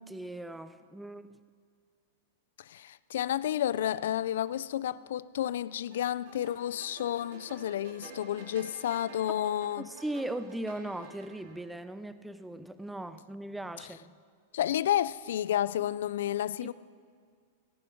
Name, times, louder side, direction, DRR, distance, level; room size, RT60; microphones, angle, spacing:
voice 1, 0.0-1.4 9.8-14.1 16.6-16.7, right 1 dB, 5° right, 0.6 m, -39 dB
voice 2, 2.6-9.9 14.5-16.7, left 11 dB, 70° left, 0.4 m, -31 dB
sound 1, 5.9-11.6, right 3 dB, 60° right, 2.8 m, -50 dB
18.0 x 11.0 x 4.5 m
hypercardioid pair, 115°, 0 cm